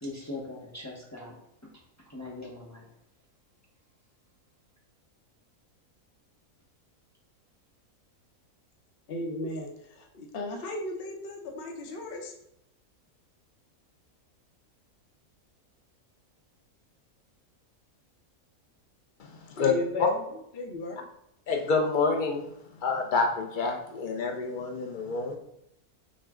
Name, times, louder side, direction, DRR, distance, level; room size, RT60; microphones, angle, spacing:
voice 1, 0.0-1.3 2.1-2.8, left 2 dB, 20° left, 0.5 m, -40 dB
voice 2, 9.1-12.3 19.6-21.0, left 2 dB, 50° left, 0.8 m, -36 dB
voice 3, 19.2-19.7 20.0-20.1 21.5-22.4 22.8-25.4, left 4 dB, 80° left, 0.4 m, -27 dB
6.2 x 2.1 x 3.6 m
omnidirectional pair, 1.5 m